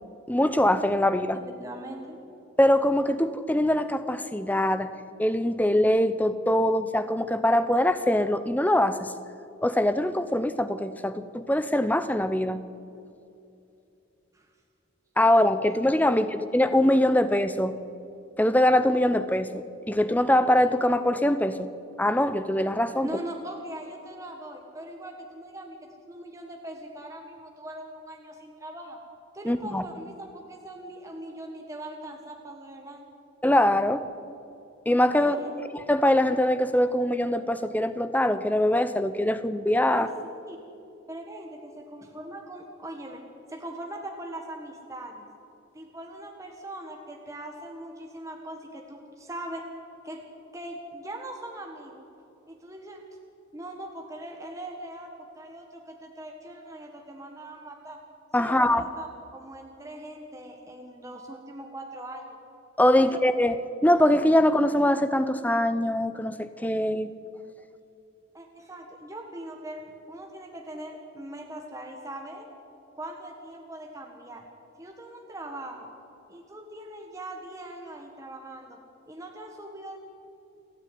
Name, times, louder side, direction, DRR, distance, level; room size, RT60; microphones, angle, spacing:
voice 1, 0.3-1.4 2.6-4.9 5.2-9.1 9.6-12.6 15.2-17.8 18.4-21.7 22.0-23.1 29.4-29.8 33.4-34.1 34.9-35.4 35.9-40.1 58.3-58.8 62.8-67.1, left 1 dB, 10° left, 11 dB, 0.7 m, -23 dB
voice 2, 1.6-2.2 14.3-14.5 23.0-25.7 26.1-29.0 29.3-33.1 35.2-35.5 39.9-40.1 40.4-40.6 41.1-43.2 43.5-45.3 45.7-49.6 50.0-50.2 50.5-52.0 52.5-53.0 53.5-58.0 58.4-59.1 59.3-62.3 63.0-63.2 68.3-72.5 73.0-74.4 74.8-75.9 76.3-78.8 79.1-80.0, right 1 dB, 15° right, 2 dB, 1.6 m, -41 dB
29.0 x 9.7 x 9.3 m, 2.7 s
head